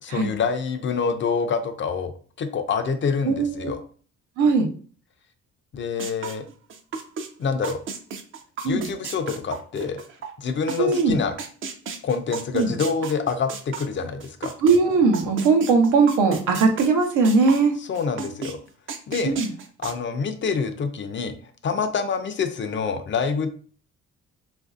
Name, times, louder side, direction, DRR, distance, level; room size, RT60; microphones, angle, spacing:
voice 1, 0.0-3.8 5.7-6.5 7.4-7.8 8.6-10.0 10.4-11.4 12.0-14.6 17.8-18.6 19.1-19.4 19.8-21.3 21.6-23.5, left 5 dB, 40° left, 8 dB, 0.4 m, -26 dB
voice 2, 3.2-3.7 4.4-4.7 8.6-8.8 10.8-11.2 12.5-12.7 14.6-17.7 19.3-19.5, right 4 dB, 80° right, 4 dB, 0.7 m, -19 dB
sound 1, 6.0-7.3 7.6-11.0 11.4-14.8 15.1-17.7 17.9-18.5 18.9-19.9, right 5 dB, 45° right, 0.5 m, -33 dB
3.0 x 2.5 x 2.4 m, 0.42 s
cardioid pair, 90°, 30 cm